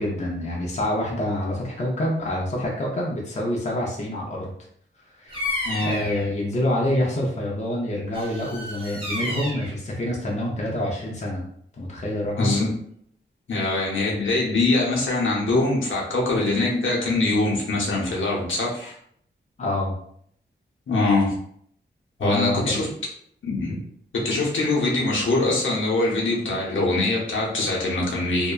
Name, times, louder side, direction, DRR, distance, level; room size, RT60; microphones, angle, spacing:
voice 1, 0.0-4.5 5.2-11.4 11.8-12.5 19.6-19.9 22.2-22.8, left 1 dB, 35° left, -3 dB, 0.5 m, -27 dB
Bird vocalization bird call bird song, 5.3-6.3 8.1-9.7, left 1 dB, 25° right, 0.6 m, -31 dB
voice 2, 5.6-6.0 12.4-12.7 13.5-18.9 20.9-21.3 22.2-22.9 23.4-23.7 24.1-28.5, left 2 dB, 75° left, -4 dB, 0.8 m, -23 dB
2.7 x 2.2 x 2.3 m, 0.66 s
wide cardioid pair, 155°, 20 cm